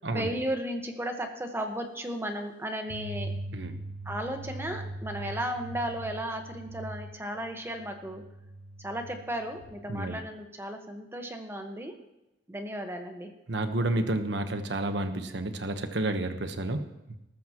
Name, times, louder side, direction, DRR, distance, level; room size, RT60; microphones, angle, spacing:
voice 1, 0.1-3.3 4.0-8.2 8.8-12.0 12.5-13.3, right 1 dB, 15° right, 4 dB, 1.4 m, -35 dB
sound 1, 2.9-9.7, right 1 dB, 30° left, 1.8 m, -41 dB
voice 2, 13.5-16.9, right 2 dB, 70° right, 7 dB, 1.2 m, -30 dB
19.5 x 13.5 x 3.1 m, 0.94 s
head